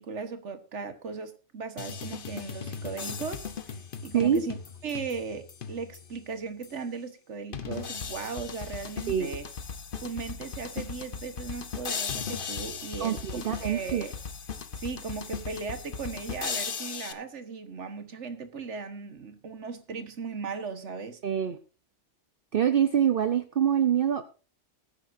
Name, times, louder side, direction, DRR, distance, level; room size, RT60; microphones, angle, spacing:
voice 1, 0.0-4.6 4.8-9.4 10.0-14.1 14.7-21.2, right 5 dB, 75° right, 1.6 m, -37 dB
sound 1, 1.8-6.2 6.6-6.7 7.5-17.1, left 6 dB, 50° left, 1.1 m, -37 dB
voice 2, 13.0-14.1 21.2-21.6 22.5-24.3, right 9 dB, 55° right, 0.9 m, -25 dB
21.0 x 9.8 x 2.6 m
omnidirectional pair, 1.2 m